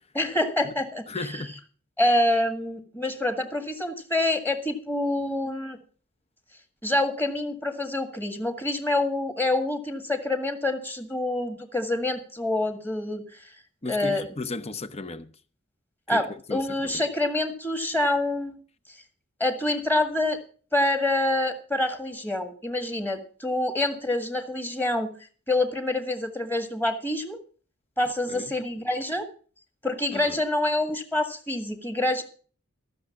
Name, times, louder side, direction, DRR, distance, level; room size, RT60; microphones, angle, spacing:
voice 1, 0.1-1.1 2.0-5.8 6.8-13.2 13.9-14.2 16.1-18.6 19.4-20.4 20.7-25.1 25.5-27.4 28.0-29.3 29.8-32.2, left 1 dB, 10° left, 1.7 m, -26 dB
voice 2, 1.1-1.6 13.8-15.3 16.1-17.0 28.3-28.5 30.1-30.4, left 3 dB, 30° left, 0.8 m, -35 dB
14.0 x 6.7 x 7.1 m
head